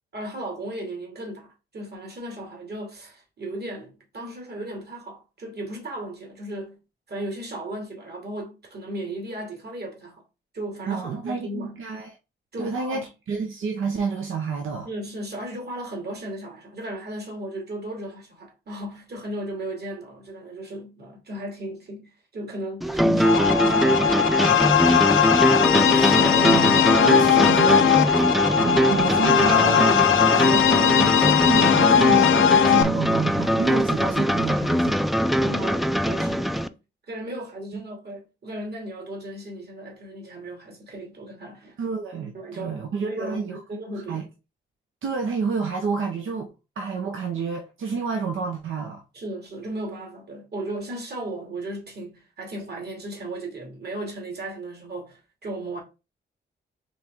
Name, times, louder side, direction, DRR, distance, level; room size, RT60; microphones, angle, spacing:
voice 1, 0.1-6.8 7.1-10.2 10.5-11.8 12.5-13.1 14.8-25.1 35.4-36.8 37.1-41.8 42.3-44.3 49.1-55.8, right 1 dB, 55° right, 2.2 m, -35 dB
voice 2, 10.9-12.1 12.6-14.9 25.8-27.9 28.4-30.0 30.3-35.0 41.8-43.6 44.1-44.2 45.0-49.0, right 5 dB, 75° right, 0.9 m, -29 dB
sound 1, 22.8-36.7, equal, ahead, 0.4 m, -22 dB
sound 2, 23.2-32.8, left 9 dB, 75° left, 0.5 m, -19 dB
4.4 x 3.3 x 3.6 m
cardioid pair, 60°, 21 cm